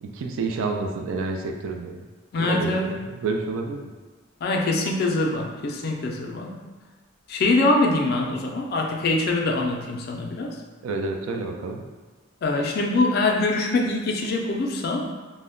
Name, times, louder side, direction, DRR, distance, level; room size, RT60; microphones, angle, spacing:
voice 1, 0.0-2.0 2.4-3.9 10.8-11.8, right 3 dB, 85° right, 4 dB, 0.3 m, -29 dB
voice 2, 2.3-2.9 4.4-6.5 7.3-10.6 12.4-15.1, left 2 dB, 50° left, 1 dB, 0.3 m, -24 dB
2.1 x 2.0 x 3.6 m, 1.3 s
head